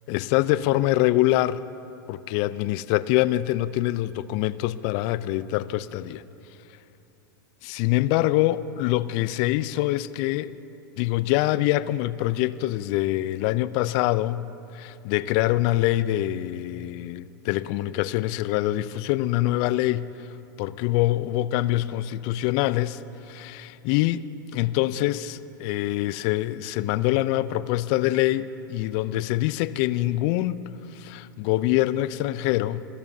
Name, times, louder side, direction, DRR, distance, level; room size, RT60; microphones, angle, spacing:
voice 1, 0.1-1.6 2.1-6.2 7.6-10.6 11.0-20.1 20.6-24.3 24.5-32.8, left 15 dB, 50° left, 0.4 m, -25 dB
27.5 x 14.0 x 2.7 m
hypercardioid pair, 100°, 11 cm